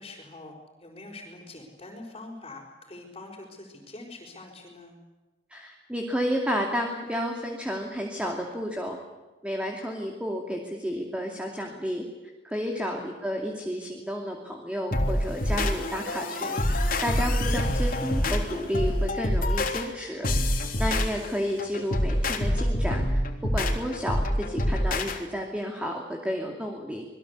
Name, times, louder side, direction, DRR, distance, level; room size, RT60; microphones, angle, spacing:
voice 1, 0.0-4.9 12.8-13.0 20.5-20.9, left 2 dB, 30° left, -4 dB, 5.0 m, -44 dB
voice 2, 5.5-9.0 9.4-12.0 12.4-20.3 20.8-23.2 23.5-27.0, equal, 5° right, 1 dB, 2.6 m, -31 dB
sound 1, 14.9-25.2, left 1 dB, 50° left, 3.5 m, -26 dB
27.5 x 21.0 x 8.4 m, 1.2 s
head